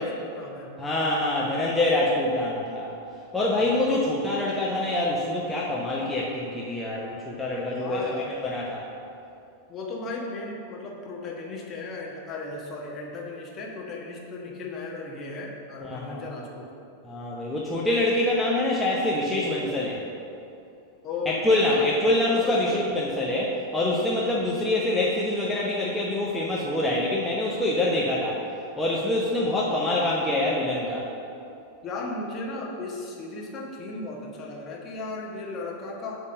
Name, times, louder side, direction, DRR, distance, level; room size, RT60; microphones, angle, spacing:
voice 1, 0.0-0.7 3.6-3.9 7.6-8.4 9.7-16.7 21.0-22.8 24.6-24.7 31.8-36.2, left 3 dB, 30° left, -2 dB, 1.4 m, -36 dB
voice 2, 0.8-3.0 3.3-8.0 8.3-8.8 15.8-16.2 17.0-20.0 21.2-28.4 28.8-31.1, left 1 dB, 5° left, -6 dB, 0.9 m, -25 dB
8.4 x 3.6 x 6.7 m, 2.6 s
figure-of-eight pair, 90°, 0 cm